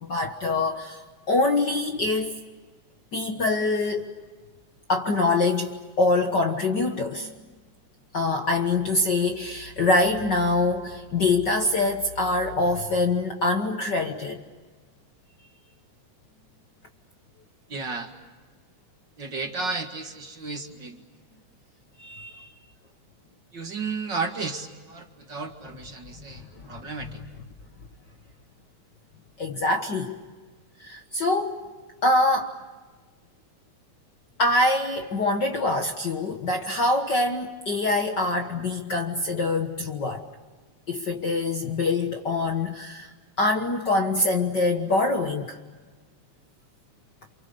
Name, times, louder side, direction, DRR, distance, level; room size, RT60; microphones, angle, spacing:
voice 1, 0.0-2.4 3.1-4.2 4.9-7.3 8.1-14.4 22.0-22.5 26.6-26.7 29.4-30.1 30.8-31.7 32.0-32.5 34.4-40.2 40.9-43.1 43.4-45.6, left 2 dB, 45° left, 1.6 m, -24 dB
voice 2, 17.7-18.1 19.2-21.0 23.5-27.2, right 4 dB, 40° right, 2.3 m, -33 dB
29.0 x 28.5 x 6.8 m
omnidirectional pair, 3.3 m